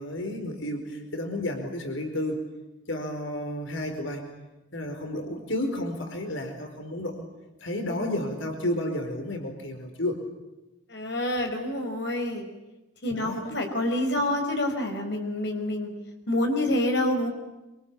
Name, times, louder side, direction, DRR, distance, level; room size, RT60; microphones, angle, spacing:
voice 1, 0.0-2.5 2.9-4.3 4.7-7.3 7.6-10.2 13.1-13.5, left 1 dB, 90° left, 5 dB, 4.7 m, -31 dB
voice 2, 10.9-12.5 13.0-15.9 16.3-17.3, left 1 dB, 60° left, 3 dB, 5.5 m, -27 dB
27.0 x 25.5 x 8.7 m, 1.0 s
head